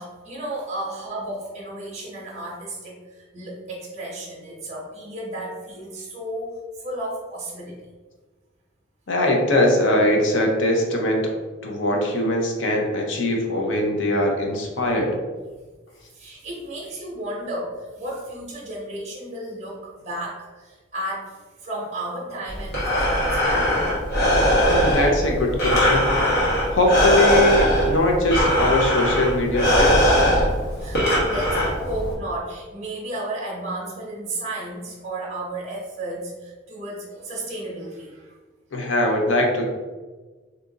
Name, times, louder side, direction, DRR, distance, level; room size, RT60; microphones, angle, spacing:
voice 1, 0.0-7.8 16.1-23.9 30.7-38.3, right 1 dB, 35° right, -4 dB, 0.7 m, -33 dB
voice 2, 9.1-11.3 11.6-15.2 24.7-26.1 26.7-30.2 38.7-39.7, left 1 dB, 80° left, 1 dB, 0.6 m, -21 dB
Breathing, 22.5-32.1, equal, 55° left, 1.1 m, -20 dB
2.8 x 2.4 x 3.7 m, 1.3 s
head